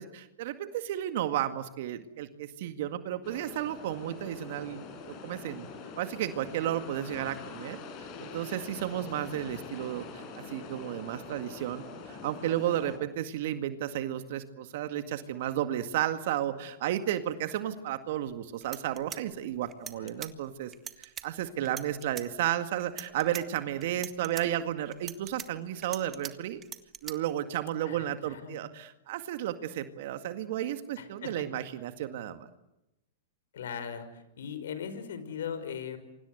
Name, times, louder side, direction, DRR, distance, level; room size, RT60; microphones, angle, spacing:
voice 1, 0.0-4.8 5.2-5.7 6.0-26.6 27.0-32.5, right 12 dB, 60° right, 9 dB, 2.0 m, -33 dB
sound 1, 3.2-13.0, left 4 dB, 40° left, 5.1 m, -44 dB
sound 2, 18.3-18.4 18.6-20.3 20.7-21.2 21.6-22.3 22.8-23.4 23.8-24.4 24.9-26.3 26.6-27.1, right 9 dB, 25° right, 1.7 m, -41 dB
voice 2, 27.8-28.6 31.0-31.4 33.5-36.0, left 7 dB, 70° left, 11 dB, 5.6 m, -39 dB
28.0 x 25.0 x 8.1 m, 0.90 s
hypercardioid pair, 120°, 0 cm